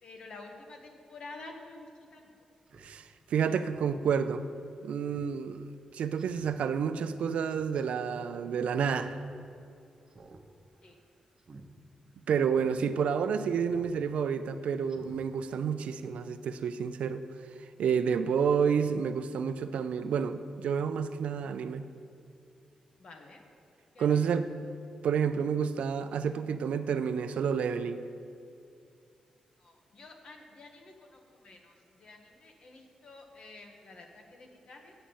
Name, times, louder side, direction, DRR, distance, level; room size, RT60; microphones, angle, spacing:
voice 1, 0.0-2.3 10.8-10.9 23.0-23.4 23.9-24.1 29.6-34.9, left 3 dB, 55° left, 3 dB, 1.3 m, -50 dB
Speech synthesizer, 2.7-2.9 3.3-3.4 3.7-4.0 4.4-4.5 5.1-5.3 5.7-5.8 6.2-6.5 7.5-7.8 8.7-9.1 9.4-9.5 10.1-10.4 10.7-10.9 11.4-11.7 12.1-12.2 12.5-12.7 13.7-14.0 14.3-14.4 14.9-15.2 15.6-15.7, right 3 dB, 35° right, 0.9 m, -52 dB
voice 2, 2.8-4.4 4.8-5.7 5.9-9.2 12.3-17.2 17.8-21.9 24.0-24.5 25.0-28.0, right 7 dB, 80° right, 10 dB, 0.5 m, -29 dB
8.9 x 7.6 x 7.0 m, 2.5 s
wide cardioid pair, 135°, 2 cm